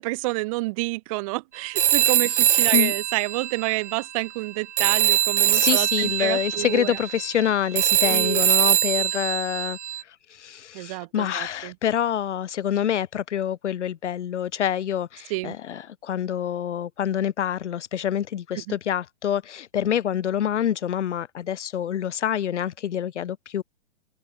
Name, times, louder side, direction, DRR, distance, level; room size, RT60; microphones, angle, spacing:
voice 1, 0.0-7.0 8.0-8.4 10.7-11.7 15.3-15.5 18.6-18.8, right 24 dB, 30° right, 0.7 m, -29 dB
Telephone, 1.7-4.5 4.8-10.0, right 12 dB, 80° right, 0.7 m, -23 dB
voice 2, 5.5-9.8 10.3-23.6, left 10 dB, 80° left, 1.3 m, -26 dB
open air
hypercardioid pair, 145°, 35 cm